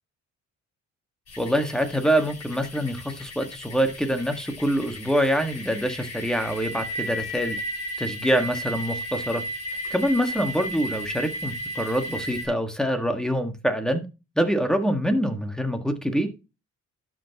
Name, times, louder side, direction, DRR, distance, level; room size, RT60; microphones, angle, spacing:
sound 1, 1.3-12.5, equal, 55° left, 3.9 m, -35 dB
voice 1, 1.4-7.6 8.0-9.4 9.9-14.0 14.3-16.3, equal, ahead, 6 dB, 1.6 m, -25 dB
11.5 x 5.8 x 2.9 m, 0.29 s
cardioid pair, 90°, 30 cm